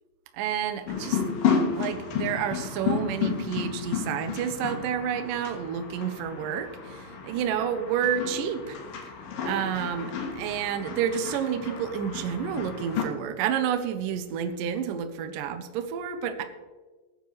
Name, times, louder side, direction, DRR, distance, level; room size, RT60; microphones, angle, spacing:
voice 1, 0.3-1.2 1.7-8.8 9.4-16.4, right 8 dB, 75° right, 7 dB, 2.0 m, -30 dB
sound 1, 0.9-13.0, left 7 dB, 65° left, 2.7 m, -32 dB
19.5 x 9.3 x 3.3 m, 1.3 s
omnidirectional pair, 4.9 m